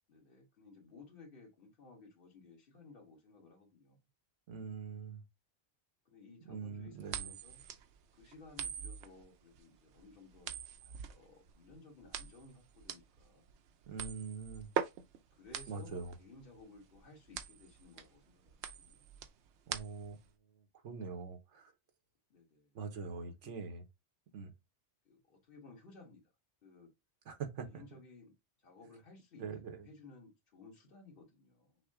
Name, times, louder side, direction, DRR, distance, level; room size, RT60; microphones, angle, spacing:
voice 1, 0.1-4.0 6.1-7.6 8.1-10.5 10.8-13.6 14.5-14.6 15.3-19.3 22.3-22.8 23.4-23.7 25.1-26.2 26.6-26.9 27.6-29.5 29.7-31.8, left 3 dB, 50° left, 1.8 m, -58 dB
voice 2, 4.5-5.2 6.5-7.3 13.9-14.7 15.7-16.1 19.7-20.2 20.5-21.7 22.7-23.8 24.3-24.5 27.3-27.8 29.4-29.9, right 5 dB, 90° right, 1.2 m, -43 dB
sound 1, 7.1-20.3, right 8 dB, 75° right, 0.9 m, -43 dB
6.2 x 2.2 x 3.6 m
omnidirectional pair, 1.2 m